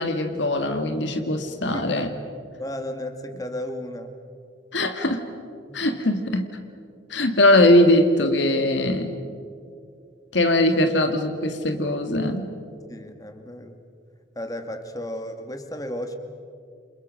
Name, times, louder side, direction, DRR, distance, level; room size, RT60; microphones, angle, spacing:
voice 1, 0.0-2.1 4.7-5.2 5.7-6.5 7.1-9.1 10.3-12.5, left 1 dB, 85° left, 7 dB, 1.9 m, -21 dB
voice 2, 1.7-2.1 2.6-4.1 5.7-5.8 12.9-13.8 14.4-16.2, left 1 dB, 20° left, 7 dB, 1.9 m, -33 dB
29.5 x 27.0 x 6.4 m, 2.4 s
head